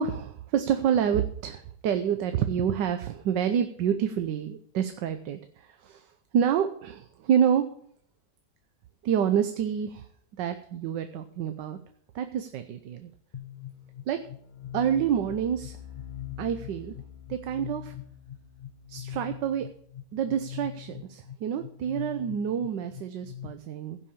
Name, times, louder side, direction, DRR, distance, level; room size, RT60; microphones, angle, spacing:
voice 1, 0.0-7.6 9.0-10.1 10.4-11.8 12.1-13.1 14.1-14.2 14.7-15.8 16.4-16.9 17.3-17.9 18.9-19.7 20.1-24.0, right 8 dB, 90° right, 8 dB, 1.4 m, -28 dB
sound 1, 13.3-23.5, left 11 dB, 55° left, 0.5 m, -42 dB
15.5 x 5.7 x 7.2 m, 0.64 s
omnidirectional pair, 1.9 m